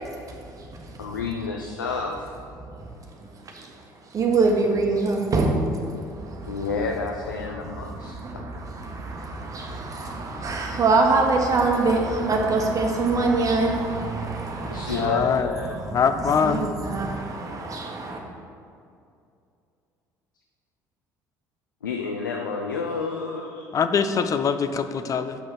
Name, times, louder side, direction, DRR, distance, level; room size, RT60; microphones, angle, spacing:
voice 1, 0.3-0.7 2.7-2.8 3.4-3.7 4.1-5.6 6.2-6.5 7.9-15.2 15.7-18.2, right 3 dB, 35° right, 1 dB, 1.4 m, -25 dB
voice 2, 1.0-2.4 6.5-8.2 14.6-15.8 21.8-23.7, left 4 dB, 80° left, 2 dB, 0.5 m, -30 dB
voice 3, 15.0-15.5 15.9-16.7 23.7-25.4, left 6 dB, 35° left, 10 dB, 0.5 m, -23 dB
6.2 x 5.9 x 6.2 m, 2.4 s
figure-of-eight pair, 55°, 10 cm